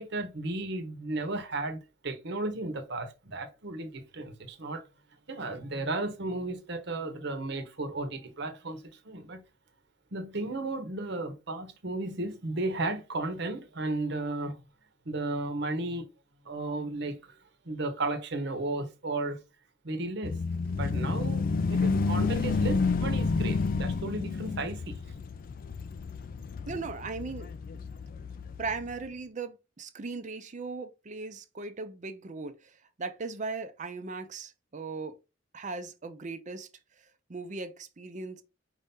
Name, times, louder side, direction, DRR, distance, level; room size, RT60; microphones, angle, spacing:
voice 1, 0.0-4.8 5.3-9.4 10.1-14.6 15.0-16.1 16.4-17.3 17.6-19.4 19.8-20.3 20.7-21.4 21.7-25.1, right 2 dB, 60° right, 1.0 m, -34 dB
sound 1, 20.2-29.1, left 4 dB, 45° left, 0.3 m, -30 dB
voice 2, 26.7-28.3 28.6-35.2 35.5-36.7 37.3-38.4, right 4 dB, 40° right, 0.6 m, -38 dB
4.8 x 2.7 x 3.5 m
head